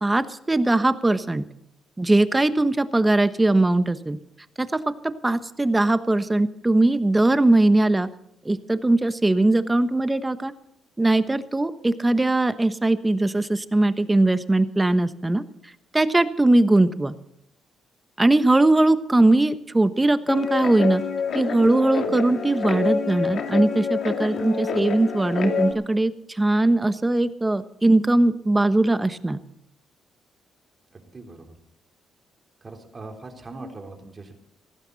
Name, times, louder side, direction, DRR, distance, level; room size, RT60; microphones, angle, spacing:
voice 1, 0.0-1.4 2.0-4.2 4.6-8.1 8.4-10.5 11.0-15.4 15.9-17.1 18.2-21.0 21.3-29.4, right 2 dB, 15° right, 12 dB, 1.2 m, -20 dB
Guitar, 20.3-25.7, left 5 dB, 60° left, 2.4 m, -27 dB
voice 2, 30.9-31.5 32.6-34.3, right 2 dB, 30° right, 4 dB, 3.8 m, -41 dB
18.0 x 15.0 x 4.1 m, 0.77 s
cardioid pair, 90°, 0 cm